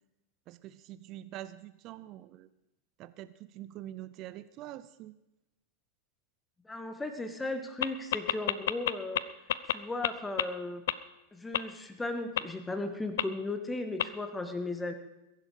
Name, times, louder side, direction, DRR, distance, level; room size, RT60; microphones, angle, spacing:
voice 1, 0.5-2.5 3.0-5.1, right 13 dB, 40° right, 15 dB, 0.6 m, -45 dB
voice 2, 6.6-9.2 9.7-10.8 11.3-14.9, left 2 dB, 10° left, 8 dB, 1.8 m, -36 dB
sound 1, 7.8-9.2 9.5-9.7 10.0-10.1 10.4-10.5 10.9-11.0 11.5-11.6 12.4-12.5 13.2-13.3 14.0-14.1, left 12 dB, 60° left, 0.6 m, -27 dB
21.5 x 11.0 x 5.0 m, 0.95 s
figure-of-eight pair, 90°, 0 cm